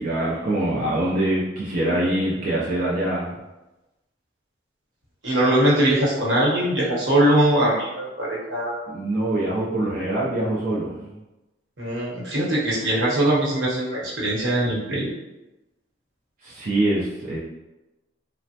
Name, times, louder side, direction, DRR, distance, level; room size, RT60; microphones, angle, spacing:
voice 1, 0.0-3.3 8.9-11.1 16.4-17.4, right 1 dB, 45° right, -6 dB, 0.4 m, -24 dB
voice 2, 5.2-8.8 11.8-15.1, right 1 dB, 75° right, -6 dB, 1.0 m, -21 dB
3.1 x 2.1 x 2.7 m, 1.0 s
head